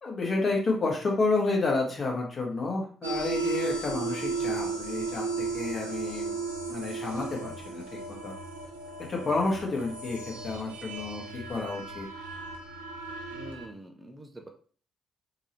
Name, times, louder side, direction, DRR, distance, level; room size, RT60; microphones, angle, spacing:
voice 1, 0.0-6.3 6.7-7.8 8.1-8.3 9.1-10.2 10.4-12.1, left 3 dB, 40° left, -1 dB, 1.8 m, -30 dB
sound 1, 3.0-13.7, right 4 dB, 80° right, 0.6 m, -35 dB
voice 2, 13.3-14.5, right 1 dB, 20° right, 3 dB, 0.8 m, -45 dB
3.7 x 3.1 x 4.5 m, 0.42 s
figure-of-eight pair, 40°, 0 cm